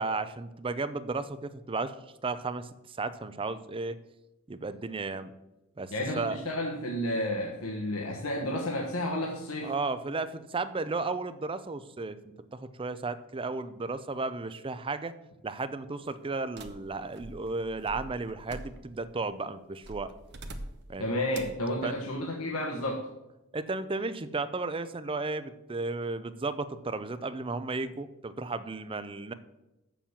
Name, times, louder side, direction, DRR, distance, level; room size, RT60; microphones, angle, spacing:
voice 1, 0.0-1.9 2.2-4.0 4.5-5.3 5.8-6.4 9.6-12.2 12.5-15.1 15.4-20.1 20.9-21.1 21.8-22.0 23.5-29.3, right 3 dB, 25° right, 13 dB, 0.5 m, -34 dB
voice 2, 5.9-9.7 21.0-23.0, left 1 dB, 85° left, -1 dB, 1.3 m, -31 dB
sound 1, 16.6-19.1 19.8-20.9 21.3-21.7, right 1 dB, 55° right, 1.0 m, -44 dB
7.4 x 7.0 x 7.2 m, 0.96 s
head